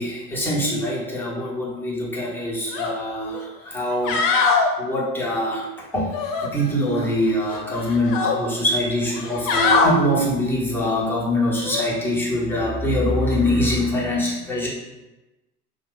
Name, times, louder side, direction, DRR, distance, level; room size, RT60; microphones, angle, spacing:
voice 1, 0.0-4.2 4.8-6.1 6.4-14.7, left 1 dB, 5° left, -6 dB, 1.0 m, -23 dB
sound 1, 2.7-2.9 3.3-3.4 3.9-4.7 6.1-7.1 7.4-8.4 9.1-9.9 11.6-11.8, left 4 dB, 55° left, 0.7 m, -22 dB
2.7 x 2.4 x 3.7 m, 1.0 s
figure-of-eight pair, 80°, 48 cm